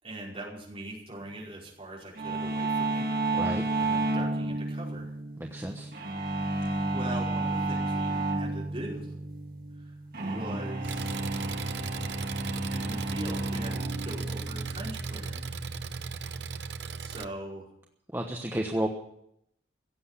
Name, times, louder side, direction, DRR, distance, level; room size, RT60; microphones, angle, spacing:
voice 1, 0.0-3.1 3.8-5.1 6.4-6.7 6.9-9.1 9.7-9.9 10.2-11.1 12.7-15.5 17.0-17.7, right 1 dB, 30° right, -4 dB, 5.0 m, -41 dB
sound 1, 2.2-16.6, right 2 dB, 55° right, 2.0 m, -32 dB
voice 2, 5.4-5.9 18.1-18.9, right 1 dB, 15° right, 1 dB, 1.1 m, -31 dB
Engine, 10.8-17.2, right 5 dB, 75° right, 0.7 m, -37 dB
16.5 x 8.2 x 9.9 m, 0.76 s
head